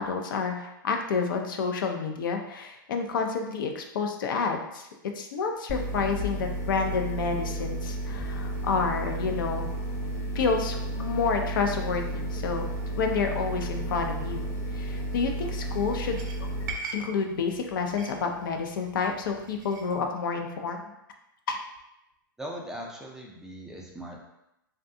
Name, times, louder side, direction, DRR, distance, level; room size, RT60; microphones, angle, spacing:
voice 1, 0.0-4.9 5.2-9.7 10.3-14.5 14.7-16.5 16.9-20.9 21.5-21.6, left 5 dB, 70° left, 4 dB, 0.4 m, -29 dB
sound 1, 5.7-16.7, right 1 dB, 40° left, 0.8 m, -32 dB
sound 2, 14.8-20.0, right 4 dB, 60° right, 0.6 m, -43 dB
voice 2, 22.4-24.3, equal, 5° right, -2 dB, 0.3 m, -39 dB
2.5 x 2.2 x 2.6 m, 0.86 s
hypercardioid pair, 125°, 12 cm